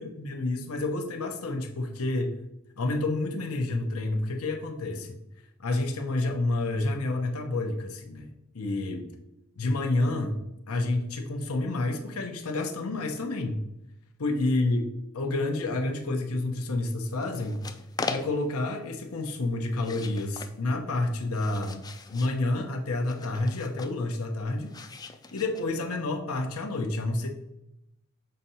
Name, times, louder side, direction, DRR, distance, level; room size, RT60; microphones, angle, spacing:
voice 1, 0.0-2.4 2.8-5.2 5.6-9.1 9.6-10.4 10.7-13.6 14.2-17.6 18.1-21.8 22.1-24.7 25.3-27.3, left 2 dB, 80° left, 3 dB, 0.8 m, -29 dB
sound 1, 17.2-18.6 19.7-20.5 21.1-22.4 23.0-24.0 24.7-25.9, left 4 dB, 20° left, 0.3 m, -39 dB
6.5 x 2.8 x 5.5 m, 0.90 s
head